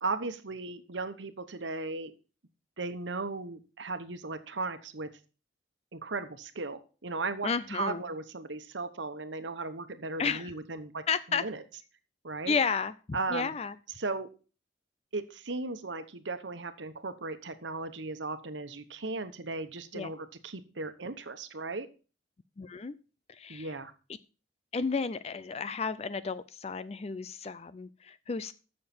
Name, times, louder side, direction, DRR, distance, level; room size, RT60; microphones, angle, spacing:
voice 1, 0.0-2.1 2.8-5.1 5.9-11.0 11.3-11.6 12.2-12.5 13.1-13.5 14.0-14.3 15.1-21.9 23.5-23.9, right 3 dB, 90° right, 10 dB, 1.2 m, -36 dB
voice 2, 7.4-8.0 10.2-10.5 11.1-11.4 12.5-12.9 13.3-13.8 19.9-20.1 22.6-23.0 23.3-23.8 24.7-28.5, left 5 dB, 35° left, 15 dB, 0.4 m, -32 dB
14.5 x 6.7 x 4.4 m, 0.35 s
head